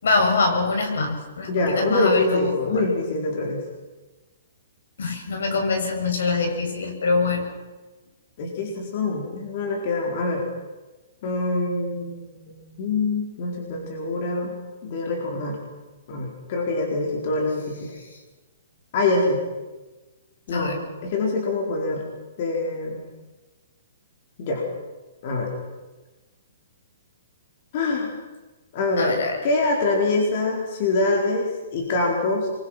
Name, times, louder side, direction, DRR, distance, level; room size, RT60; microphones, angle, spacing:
voice 1, 0.0-2.9 5.0-7.5 20.5-20.8 29.0-29.4, left 3 dB, 75° left, 3 dB, 6.9 m, -24 dB
voice 2, 1.5-3.6 8.4-10.4 11.2-14.5 14.8-15.6 16.1-17.9 18.9-19.4 20.5-20.8 21.0-22.0 22.4-23.0 24.4-24.6 25.2-25.5 27.7-28.1 28.7-32.5, left 2 dB, 35° left, 0 dB, 4.3 m, -25 dB
26.5 x 23.0 x 5.9 m, 1.2 s
hypercardioid pair, 175°, 0 cm